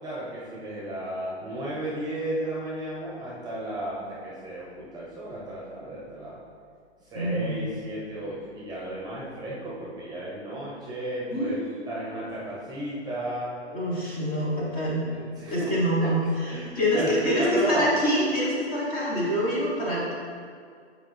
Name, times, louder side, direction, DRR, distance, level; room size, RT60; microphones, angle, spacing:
voice 1, 0.0-6.4 7.0-13.6 15.0-17.9, right 1 dB, 10° right, -7 dB, 1.1 m, -33 dB
voice 2, 7.1-7.6 11.3-11.9 13.7-15.1 15.5-20.1, equal, 25° left, -5 dB, 1.2 m, -26 dB
5.7 x 4.9 x 3.3 m, 2.2 s
hypercardioid pair, 125°, 35 cm